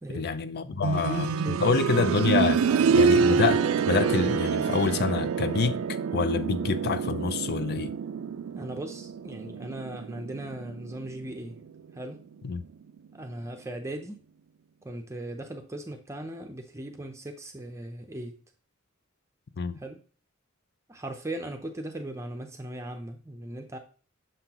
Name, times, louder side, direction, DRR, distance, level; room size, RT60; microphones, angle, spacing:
voice 1, 0.1-1.3 1.6-2.6 2.9-5.8 6.1-7.9 12.4-12.6 19.6-19.8, left 5 dB, 50° left, 0.5 m, -27 dB
voice 2, 0.6-1.6 2.7-2.8 8.5-11.6 11.9-12.2 13.1-14.2 14.8-18.4 19.8-20.0 20.9-23.8, right 1 dB, 15° right, 0.6 m, -38 dB
sound 1, 0.8-11.6 13.0-13.1, right 5 dB, 90° right, 0.4 m, -27 dB
6.8 x 5.8 x 2.9 m
head